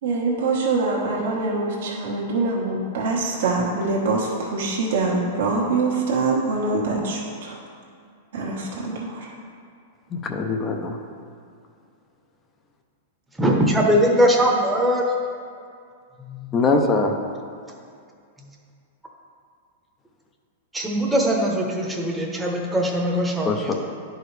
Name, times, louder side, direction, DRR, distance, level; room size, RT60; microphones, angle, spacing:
voice 1, 0.0-7.6 8.3-9.3, right 3 dB, 70° right, -4 dB, 1.3 m, -24 dB
voice 2, 10.1-11.0 16.5-17.1 23.4-23.7, left 3 dB, 20° left, 3 dB, 0.6 m, -22 dB
voice 3, 13.3-15.1 16.2-16.6 20.7-23.7, equal, 5° right, -2 dB, 0.9 m, -21 dB
10.5 x 4.7 x 3.2 m, 2.3 s
supercardioid pair, 145°, 0 cm